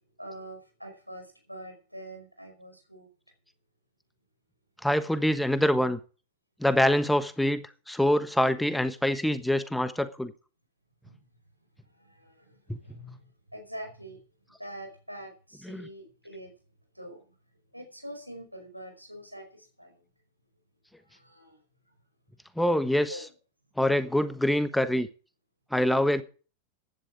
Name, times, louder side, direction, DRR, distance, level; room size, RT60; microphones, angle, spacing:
voice 1, 0.2-3.1 11.0-11.2 11.9-14.2 14.6-16.5 16.9-17.2 17.7-20.0 21.0-21.6 23.1-23.3, equal, 90° right, 5.1 m, -44 dB
voice 2, 4.8-6.0 6.6-10.3 12.7-12.8 15.6-15.9 22.6-23.2 23.8-25.1 25.7-26.2, left 1 dB, 5° left, 1.2 m, -25 dB
15.0 x 11.0 x 4.9 m
figure-of-eight pair, 90°, 0 cm